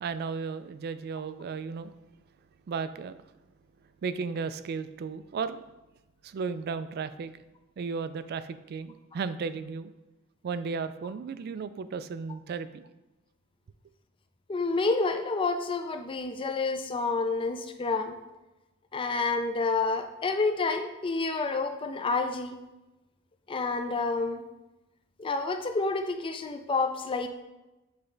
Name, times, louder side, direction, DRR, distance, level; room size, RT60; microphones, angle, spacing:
voice 1, 0.0-1.9 2.7-3.2 4.0-5.6 6.2-7.3 7.8-9.9 10.4-12.8, right 5 dB, 50° right, 13 dB, 0.3 m, -34 dB
voice 2, 14.5-18.2 18.9-22.6 23.5-24.4 25.2-27.3, left 3 dB, 25° left, 6 dB, 0.4 m, -29 dB
7.9 x 3.3 x 3.8 m, 1.0 s
head